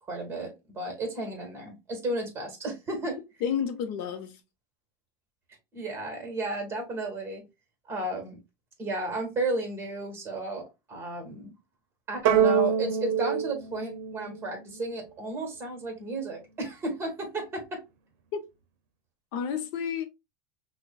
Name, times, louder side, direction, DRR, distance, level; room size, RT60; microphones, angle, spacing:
voice 1, 0.1-3.2 5.7-7.4 7.9-8.4 8.8-11.5 12.1-17.8, right 2 dB, 20° right, 1.4 m, -33 dB
voice 2, 3.4-4.4 18.3-18.5 19.3-20.1, left 7 dB, 55° left, 0.7 m, -30 dB
sound 1, 12.3-14.8, right 8 dB, 60° right, 0.7 m, -25 dB
5.9 x 2.2 x 2.3 m
supercardioid pair, 155°, 12 cm